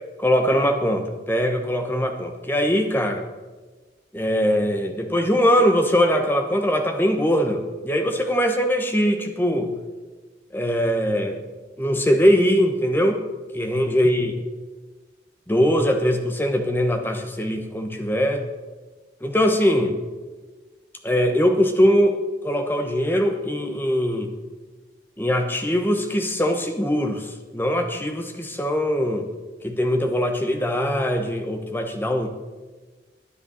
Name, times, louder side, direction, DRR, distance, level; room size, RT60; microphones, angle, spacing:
voice 1, 0.2-3.3 4.1-9.7 10.5-11.4 11.8-13.2 13.5-14.3 15.5-18.4 19.2-20.0 21.0-22.2 22.4-24.3 25.2-27.3 27.5-29.3 29.6-32.3, equal, 10° left, 5 dB, 1.1 m, -21 dB
10.5 x 9.9 x 6.4 m, 1.3 s
head